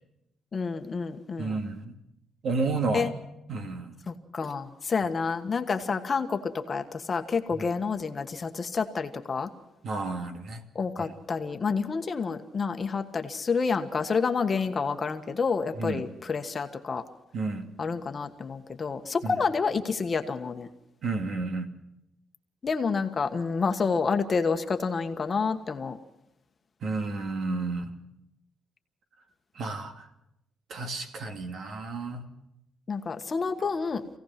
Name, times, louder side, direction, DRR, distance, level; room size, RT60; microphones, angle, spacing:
voice 1, 0.5-1.6 2.9-3.1 4.1-6.4 6.7-9.5 10.7-17.0 17.8-20.7 22.6-26.0 32.9-34.0, left 5 dB, 30° left, 6 dB, 1.4 m, -29 dB
voice 2, 1.4-1.9 2.4-3.2 3.5-3.9 7.5-7.7 9.8-10.6 11.0-11.1 15.7-16.0 17.3-17.7 19.2-19.3 21.0-21.7 26.8-27.9 29.6-30.1 30.7-32.3, right 3 dB, 55° right, 5 dB, 2.4 m, -31 dB
27.0 x 17.0 x 5.9 m, 0.84 s
cardioid pair, 145°, 0 cm